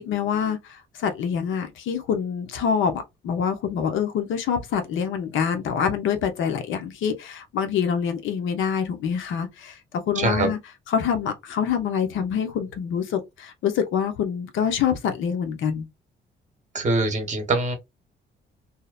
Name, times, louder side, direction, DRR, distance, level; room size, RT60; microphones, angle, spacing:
voice 1, 0.0-10.6 10.9-15.9, left 7 dB, 80° left, 0.7 m, -26 dB
voice 2, 10.1-10.5 16.7-17.8, right 2 dB, 35° right, 1.0 m, -23 dB
2.7 x 2.0 x 2.3 m
cardioid pair, 90°, 20 cm